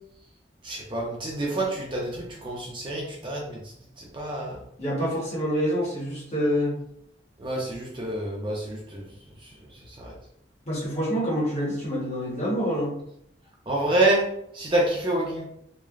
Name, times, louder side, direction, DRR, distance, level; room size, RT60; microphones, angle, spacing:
voice 1, 0.6-3.6 4.1-4.6 7.4-9.0 10.0-10.1 13.7-14.3 14.5-15.4, right 1 dB, 25° right, -3 dB, 0.5 m, -27 dB
voice 2, 4.8-6.8 10.7-13.0, equal, 35° left, -4 dB, 0.9 m, -26 dB
3.1 x 2.0 x 2.4 m, 0.70 s
head